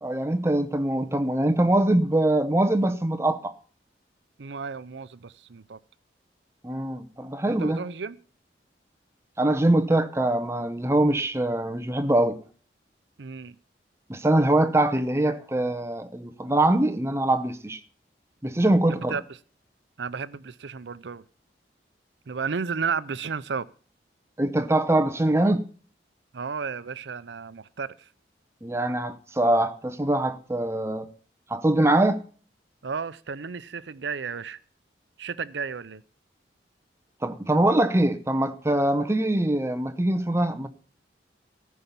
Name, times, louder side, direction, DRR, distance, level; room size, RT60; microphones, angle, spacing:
voice 1, 0.0-3.5 6.6-7.8 9.4-12.4 14.1-17.8 18.4-19.2 24.4-25.7 28.6-31.1 31.5-32.2 37.2-40.7, right 1 dB, 15° right, 0.8 m, -23 dB
voice 2, 4.4-5.8 7.5-8.2 13.2-13.6 18.9-19.2 20.0-21.2 22.3-23.7 26.3-28.1 32.8-34.6 35.2-36.0, right 5 dB, 80° right, 0.6 m, -33 dB
14.0 x 5.6 x 8.3 m
head